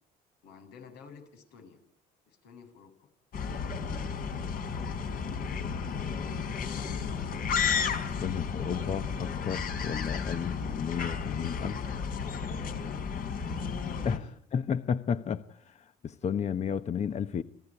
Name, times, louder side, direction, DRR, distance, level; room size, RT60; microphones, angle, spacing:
voice 1, 0.4-1.8 2.3-3.1 3.6-6.1 11.2-11.6 12.1-14.1, left 6 dB, 85° left, 7 dB, 7.6 m, -53 dB
sound 1, 3.3-14.2, left 6 dB, 55° left, 4.3 m, -33 dB
voice 2, 8.1-11.8 14.0-14.2 14.5-17.4, left 7 dB, 40° left, 11 dB, 1.1 m, -32 dB
30.0 x 19.5 x 10.0 m, 0.65 s
cardioid pair, 110°, 17 cm